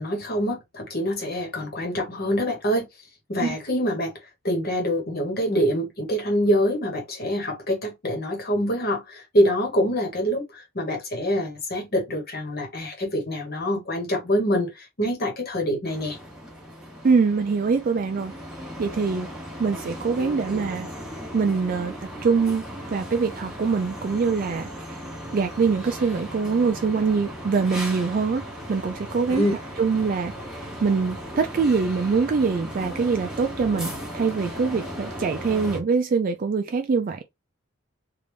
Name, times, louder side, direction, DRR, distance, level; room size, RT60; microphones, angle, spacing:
voice 1, 0.0-2.9 3.3-4.1 4.4-16.2 29.3-29.5, equal, 50° left, 1.3 m, -25 dB
Condo construction, 15.9-35.8, equal, 5° right, 1.0 m, -37 dB
voice 2, 17.0-18.3 18.8-19.3 19.6-20.9 21.3-21.9 22.2-22.6 22.9-25.0 25.3-29.5 29.8-37.2, right 5 dB, 40° right, 0.3 m, -24 dB
3.3 x 2.5 x 3.3 m
head